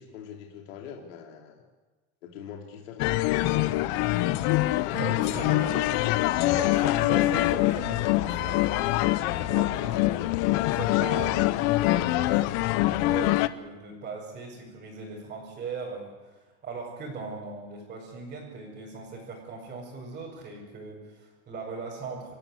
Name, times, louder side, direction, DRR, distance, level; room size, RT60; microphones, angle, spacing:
voice 1, 0.0-1.6 2.2-3.9, left 7 dB, 75° left, 1 dB, 3.1 m, -43 dB
sound 1, 3.0-13.5, left 17 dB, 40° left, 0.8 m, -24 dB
voice 2, 4.9-10.3 10.7-12.5 12.9-22.3, right 4 dB, 20° right, -5 dB, 5.6 m, -39 dB
27.5 x 14.5 x 9.6 m, 1.2 s
supercardioid pair, 160°, 39 cm